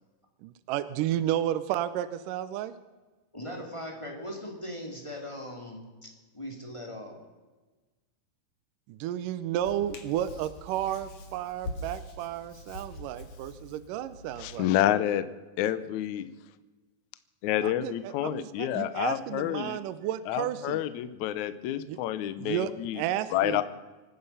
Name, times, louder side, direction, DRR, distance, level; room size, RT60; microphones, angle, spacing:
voice 1, 0.4-2.7 8.9-14.7 17.6-20.8 21.9-22.0 22.4-23.6, right 12 dB, 75° right, 13 dB, 2.0 m, -32 dB
voice 2, 3.3-7.2, equal, 10° left, 1 dB, 1.9 m, -40 dB
Hands, 9.6-14.6, left 1 dB, 55° left, 3.0 m, -43 dB
voice 3, 14.4-15.2 15.6-16.3 17.4-19.8 20.3-23.0 23.3-23.6, left 12 dB, 75° left, 13 dB, 1.8 m, -29 dB
26.0 x 10.0 x 5.6 m, 1.2 s
omnidirectional pair, 4.3 m